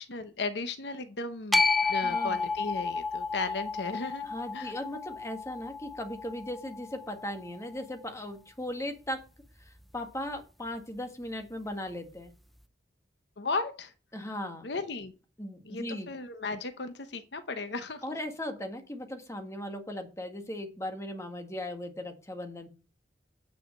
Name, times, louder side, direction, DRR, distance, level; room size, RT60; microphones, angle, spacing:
voice 1, 0.0-1.6 1.9-4.3 4.5-4.7 13.4-13.9 14.6-15.1 15.6-18.0, left 3 dB, 65° left, 9 dB, 0.9 m, -35 dB
sound 1, 1.5-7.7, left 4 dB, ahead, 0.5 m, -31 dB
voice 2, 1.8-2.3 4.2-9.2 9.6-12.3 14.1-14.7 15.4-16.1 18.0-22.7, left 1 dB, 15° left, 5 dB, 1.6 m, -38 dB
9.2 x 5.0 x 7.5 m, 0.33 s
head